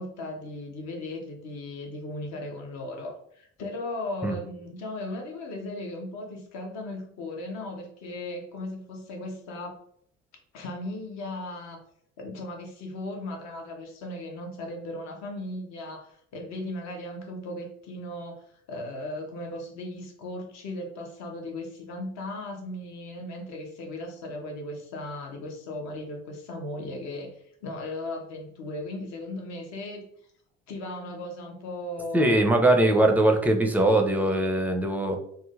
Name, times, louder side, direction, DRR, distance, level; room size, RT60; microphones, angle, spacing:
voice 1, 0.0-9.8 10.5-11.8 12.2-27.3 27.6-30.1 30.7-32.7, left 1 dB, 55° left, 2 dB, 0.8 m, -37 dB
voice 2, 32.1-35.2, right 1 dB, 5° right, 4 dB, 0.5 m, -21 dB
3.7 x 2.1 x 2.4 m, 0.66 s
figure-of-eight pair, 50°, 33 cm